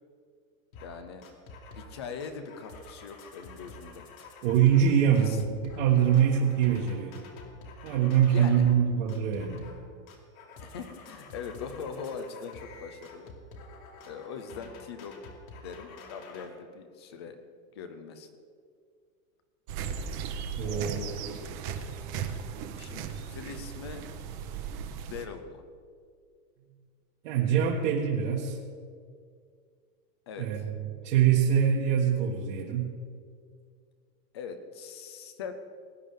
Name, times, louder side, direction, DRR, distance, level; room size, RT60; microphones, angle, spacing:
sound 1, 0.7-0.9 1.2-1.9 2.2-8.8 9.1-9.8 10.1-16.5, left 3 dB, 75° left, 2.7 m, -48 dB
voice 1, 0.8-1.3 1.7-4.1 5.2-5.4 8.3-8.7 10.6-13.4 14.0-15.2 15.6-17.4 17.7-18.3 20.6-21.2 22.8-24.0 24.9-25.6 30.3-30.7 34.3-35.5, left 6 dB, 20° left, 9 dB, 0.3 m, -41 dB
voice 2, 4.4-7.2 7.8-9.7 20.6-21.1 27.2-28.6 30.4-32.9, right 8 dB, 55° right, -4 dB, 1.6 m, -24 dB
sound 2, 19.7-25.3, right 7 dB, 35° right, 0.8 m, -37 dB
20.5 x 10.0 x 3.7 m, 2.1 s
supercardioid pair, 170°, 43 cm